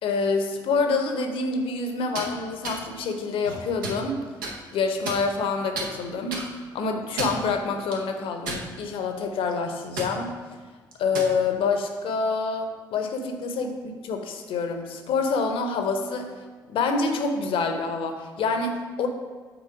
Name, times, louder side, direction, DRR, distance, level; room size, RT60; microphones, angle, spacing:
voice 1, 0.0-4.2 4.7-6.5 6.7-10.3 11.0-16.4 16.7-19.1, left 4 dB, 55° left, 5 dB, 0.8 m, -27 dB
sound 1, 2.0-2.3 2.6-2.8 3.4-4.0 4.4-4.5 5.1-5.5 5.8-5.9 6.3-6.5 7.0-7.4 7.9-8.0 8.5-9.0 9.3-9.5 10.0-10.1 10.9-11.3, right 2 dB, 75° right, 0.9 m, -32 dB
7.0 x 4.1 x 4.8 m, 1.4 s
figure-of-eight pair, 45°, 11 cm